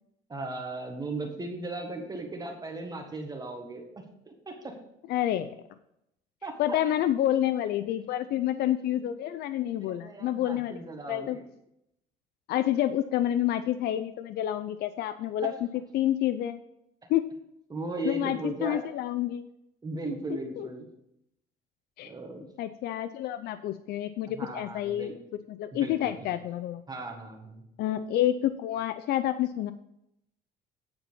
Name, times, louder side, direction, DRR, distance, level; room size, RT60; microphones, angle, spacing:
voice 1, 0.3-3.9 4.3-4.7 6.4-6.8 8.5-8.9 9.9-11.4 15.4-15.5 17.7-18.8 19.8-20.9 22.0-22.5 24.4-25.1 25.7-26.3 26.9-27.6, right 2 dB, 25° right, 2 dB, 1.6 m, -37 dB
voice 2, 5.1-5.5 6.6-11.4 12.5-15.5 15.9-16.6 17.1-17.3 18.0-19.5 20.0-20.7 22.0-22.1 22.6-25.1 25.5-26.8 27.8-29.7, left 12 dB, 70° left, 11 dB, 0.5 m, -29 dB
9.7 x 4.3 x 7.0 m, 0.80 s
cardioid pair, 110°, 17 cm